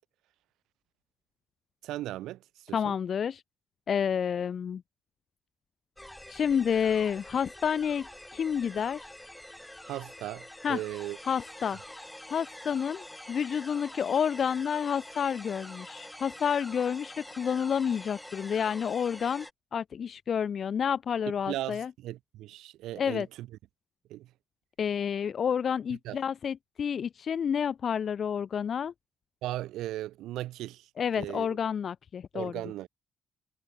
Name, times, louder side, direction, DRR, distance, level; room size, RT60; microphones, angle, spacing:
voice 1, 1.8-2.4 2.6-2.9 9.8-11.2 21.5-23.5 24.1-24.3 26.0-26.2 29.4-30.9 31.1-31.5 32.3-32.9, right 15 dB, 90° right, 1.6 m, -37 dB
voice 2, 2.7-3.4 3.9-4.8 6.3-9.1 10.6-10.8 11.2-11.8 12.3-19.5 19.7-21.9 23.0-23.3 24.8-28.9 31.0-32.5, left 7 dB, 55° left, 0.4 m, -29 dB
sound 1, 6.0-19.5, left 1 dB, 5° left, 5.5 m, -46 dB
cardioid pair, 90°, 0 cm